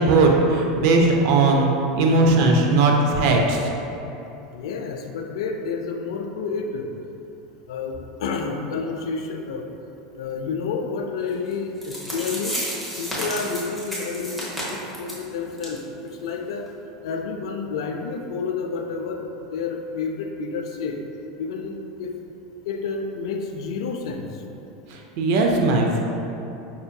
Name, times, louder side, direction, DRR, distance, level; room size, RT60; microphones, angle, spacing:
voice 1, 0.0-1.7 1.9-3.7 24.9-26.0, right 2 dB, 60° right, 1 dB, 0.4 m, -18 dB
voice 2, 4.5-6.9 7.7-9.6 10.2-12.6 13.0-16.7 17.0-21.0 21.4-22.1 22.7-24.3, left 4 dB, 85° left, 3 dB, 0.3 m, -30 dB
sound 1, 11.5-11.6 11.8-15.2 15.6-15.8 16.1-16.2 16.7-16.8, equal, 5° right, 0.8 m, -31 dB
5.4 x 2.6 x 2.2 m, 2.9 s
supercardioid pair, 135°, 3 cm